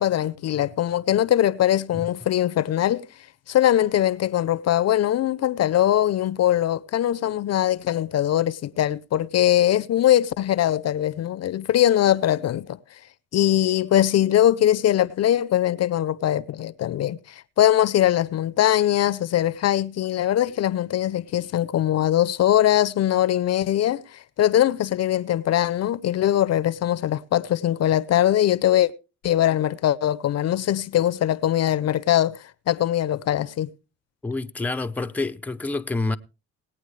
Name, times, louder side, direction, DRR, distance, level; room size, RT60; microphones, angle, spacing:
voice 1, 0.0-3.0 3.5-12.8 13.3-28.9 29.2-32.4 32.7-33.7, left 12 dB, 55° left, 0.6 m, -21 dB
voice 2, 34.2-36.2, left 3 dB, 5° left, 0.6 m, -28 dB
19.0 x 8.9 x 3.2 m
cardioid pair, 90°, 30 cm